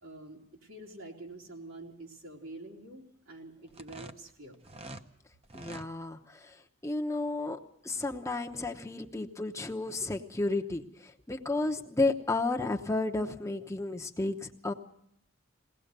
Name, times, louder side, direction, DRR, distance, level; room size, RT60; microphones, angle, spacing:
voice 1, 0.0-4.6, right 2 dB, 90° right, -1 dB, 3.9 m, -47 dB
sound 1, 3.7-5.1 5.4-5.9, right 2 dB, 30° right, 0.8 m, -45 dB
voice 2, 5.5-6.6 6.8-7.6 7.8-14.7, left 2 dB, 15° left, 3 dB, 0.9 m, -32 dB
21.5 x 18.0 x 6.7 m, 0.74 s
head